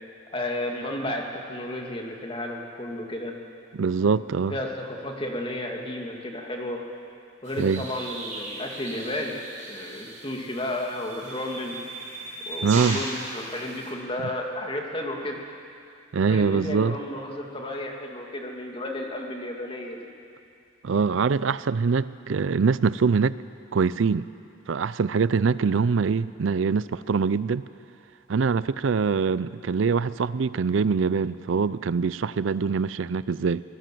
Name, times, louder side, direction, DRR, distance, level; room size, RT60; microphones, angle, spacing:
voice 1, 0.3-3.3 4.5-6.8 7.4-9.3 9.7-11.8 12.5-15.4 16.3-20.0, left 1 dB, 25° left, 1 dB, 2.4 m, -32 dB
voice 2, 3.7-4.5 7.6-7.8 12.6-13.0 16.1-17.0 20.8-23.4 23.7-24.2 24.7-27.6 28.3-33.6, right 5 dB, 70° right, 17 dB, 0.5 m, -23 dB
sound 1, 7.4-13.9, right 2 dB, 40° right, 5.0 m, -37 dB
24.0 x 19.0 x 7.7 m, 2.5 s
head